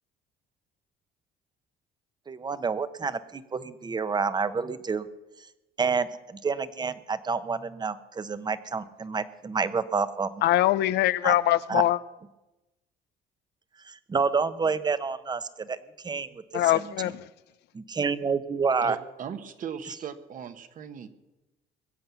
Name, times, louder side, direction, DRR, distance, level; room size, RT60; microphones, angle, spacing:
voice 1, 2.3-5.1 5.8-10.3 11.2-11.3 11.7-11.8 13.8-15.8 16.0-16.4 16.7-16.9 18.0-19.0, right 5 dB, 25° right, 13 dB, 0.9 m, -28 dB
voice 2, 10.4-12.0 16.5-17.3, left 14 dB, 80° left, 17 dB, 0.5 m, -23 dB
voice 3, 18.8-21.1, right 7 dB, 50° right, 9 dB, 1.4 m, -38 dB
22.0 x 7.8 x 7.0 m, 1.0 s
cardioid pair, 110°, 17 cm